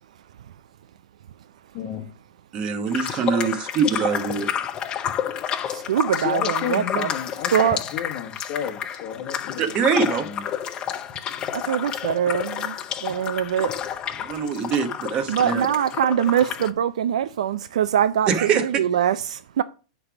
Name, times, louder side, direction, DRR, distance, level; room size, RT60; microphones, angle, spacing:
voice 1, 1.7-2.1 6.1-10.4, left 8 dB, 40° left, 1.1 m, -32 dB
voice 2, 2.5-4.5 9.6-10.3 14.2-15.6 18.3-18.8, right 6 dB, 30° right, 1.0 m, -23 dB
sound 1, 2.9-16.7, left 9 dB, 25° left, 0.5 m, -30 dB
voice 3, 5.7-7.1 7.5-7.8 11.5-12.7 13.0-13.7 15.3-19.6, right 9 dB, 85° right, 0.4 m, -23 dB
9.6 x 3.4 x 5.9 m
supercardioid pair, 155°, 4 cm